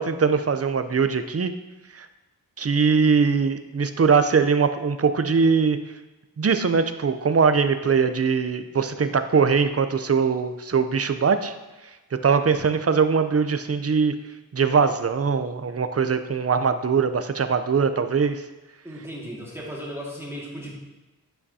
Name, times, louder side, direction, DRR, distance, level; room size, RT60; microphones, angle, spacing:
voice 1, 0.0-1.6 1.9-2.1 2.6-5.8 6.4-11.5 12.2-14.1 14.5-18.4, right 5 dB, 40° right, 9 dB, 0.5 m, -21 dB
voice 2, 18.8-20.7, equal, 5° right, -4 dB, 1.9 m, -36 dB
9.5 x 5.7 x 2.7 m, 1.1 s
wide cardioid pair, 65°, 38 cm